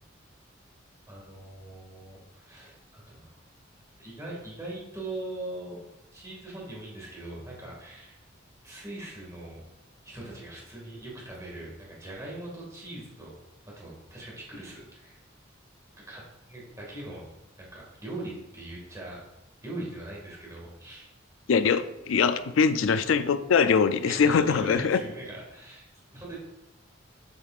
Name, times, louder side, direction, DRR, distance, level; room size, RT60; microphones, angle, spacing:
voice 1, 1.1-3.4 4.0-5.8 6.1-8.2 8.6-9.6 10.0-13.3 13.6-15.2 16.0-17.3 17.6-19.3 19.6-21.1 24.0-26.4, right 2 dB, 15° right, -4 dB, 2.0 m, -41 dB
voice 2, 21.5-25.0, left 6 dB, 80° left, 12 dB, 0.4 m, -23 dB
7.9 x 5.1 x 2.5 m, 0.93 s
head